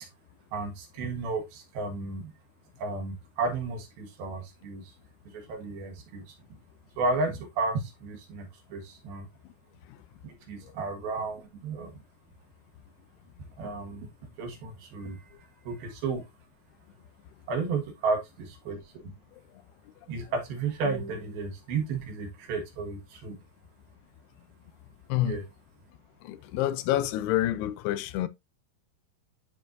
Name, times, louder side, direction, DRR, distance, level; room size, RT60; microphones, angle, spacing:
voice 1, 0.5-2.3 2.8-4.9 5.3-6.3 7.0-9.3 10.2-11.9 13.6-14.1 14.4-16.3 17.5-19.1 20.1-23.4 25.2-25.4, right 3 dB, 70° right, 3.3 m, -33 dB
voice 2, 26.2-28.3, left 13 dB, 90° left, 2.6 m, -28 dB
12.0 x 4.4 x 2.6 m
omnidirectional pair, 4.5 m